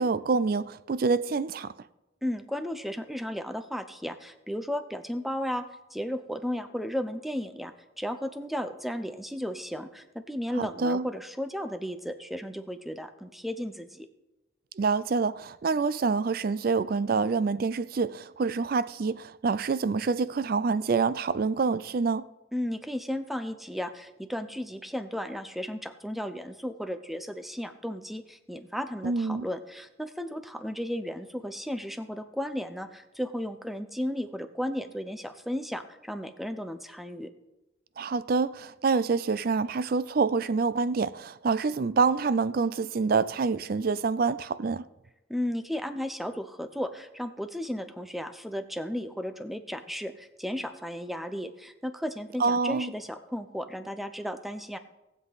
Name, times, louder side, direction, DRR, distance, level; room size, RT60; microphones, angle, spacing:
voice 1, 0.0-1.7 10.6-11.1 14.8-22.3 29.0-29.5 38.0-44.9 52.4-52.9, right 4 dB, 45° right, 0.4 m, -26 dB
voice 2, 2.2-5.6 5.9-14.1 22.5-37.3 45.3-54.8, equal, ahead, 0.6 m, -34 dB
18.5 x 7.6 x 4.0 m
head